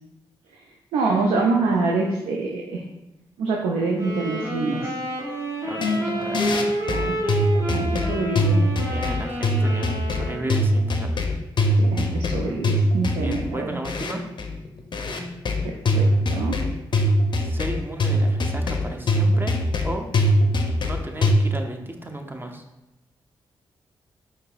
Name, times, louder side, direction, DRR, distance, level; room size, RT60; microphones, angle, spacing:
voice 1, 0.9-2.8 3.4-4.9 6.9-7.2 7.7-8.6 11.7-13.8 15.6-16.6, right 3 dB, 85° right, -1 dB, 0.4 m, -25 dB
sound 1, 3.9-10.7, right 1 dB, 35° right, 1.2 m, -29 dB
voice 2, 5.6-6.5 8.9-11.1 13.2-14.2 17.3-19.6 19.8-20.1 20.8-22.6, right 1 dB, 20° right, 4 dB, 0.6 m, -34 dB
sound 2, 5.8-21.3, left 1 dB, 50° left, 0.5 m, -22 dB
4.6 x 2.7 x 2.4 m, 0.95 s
supercardioid pair, 40°, 10 cm